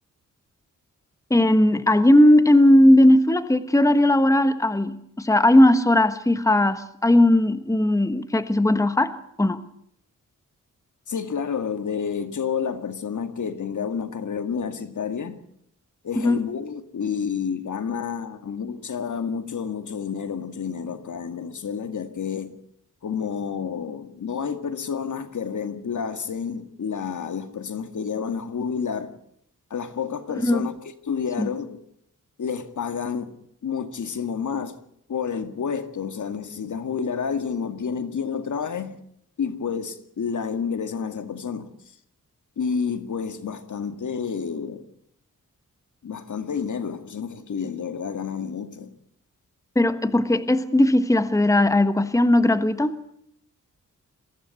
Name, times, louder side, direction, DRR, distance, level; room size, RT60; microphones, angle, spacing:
voice 1, 1.3-9.1 9.4-9.6 16.1-16.4 30.4-30.7 31.4-31.5 49.7-53.0, left 1 dB, 10° left, 1.3 m, -18 dB
voice 2, 11.1-15.4 16.0-22.6 23.0-29.1 29.7-30.7 31.0-31.8 32.4-33.3 33.6-34.7 35.1-39.0 39.4-41.7 42.6-44.9 46.0-48.9, left 6 dB, 65° left, 2.0 m, -29 dB
23.0 x 15.5 x 8.2 m
wide cardioid pair, 105°, 32 cm